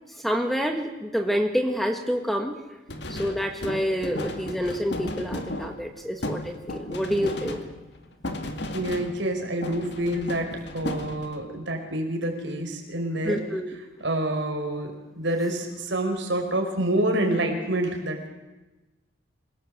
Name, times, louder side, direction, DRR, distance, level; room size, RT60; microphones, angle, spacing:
voice 1, 0.2-2.6 3.1-7.6 13.2-13.7, equal, ahead, 5 dB, 1.5 m, -27 dB
sound 1, 2.9-9.4 9.6-11.5, left 1 dB, 55° left, 2.2 m, -35 dB
voice 2, 8.7-13.4 14.0-18.3, right 1 dB, 65° right, 4 dB, 5.0 m, -27 dB
26.5 x 18.0 x 7.8 m, 1.1 s
head